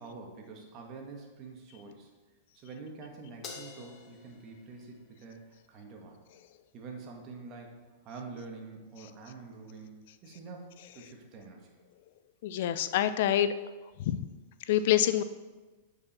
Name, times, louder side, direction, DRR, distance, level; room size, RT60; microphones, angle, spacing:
voice 1, 0.0-2.1 2.5-6.2 6.7-11.8, right 4 dB, 40° right, 1 dB, 1.6 m, -46 dB
Crash cymbal, 3.4-6.0, left 5 dB, 30° left, 1.2 m, -49 dB
voice 2, 12.4-13.5 14.0-14.2 14.7-15.2, left 11 dB, 65° left, 12 dB, 0.4 m, -26 dB
8.5 x 4.9 x 4.3 m, 1.2 s
hypercardioid pair, 125°, 0 cm